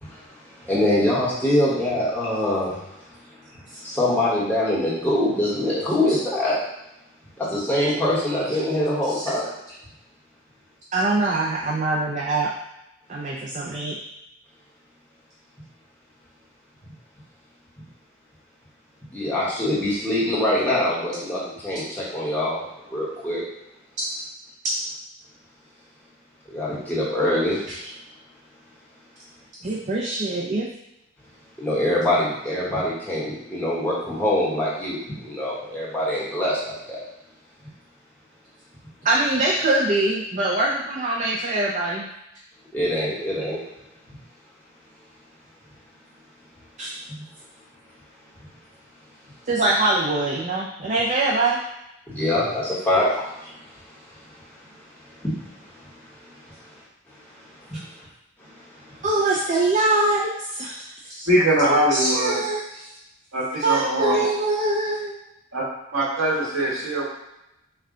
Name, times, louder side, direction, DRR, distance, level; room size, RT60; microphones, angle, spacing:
voice 1, 0.0-2.8 3.5-6.6 7.4-9.5 19.1-22.6 22.9-23.5 26.5-27.9 31.6-37.0 42.7-43.6 52.1-54.2 54.5-56.7 57.3-57.8 58.4-59.0, left 1 dB, 10° left, -8 dB, 1.2 m, -25 dB
voice 2, 10.9-12.5 13.1-14.0 27.7-27.8 29.6-30.7 39.0-42.1 46.8-46.9 49.5-51.6 59.0-61.3 61.7-62.9 63.6-65.1, right 2 dB, 35° right, -3 dB, 0.5 m, -23 dB
voice 3, 61.3-62.4 63.3-64.2 65.5-65.6 65.9-67.0, right 1 dB, 80° right, -5 dB, 1.6 m, -22 dB
5.5 x 2.3 x 3.7 m, 0.88 s
head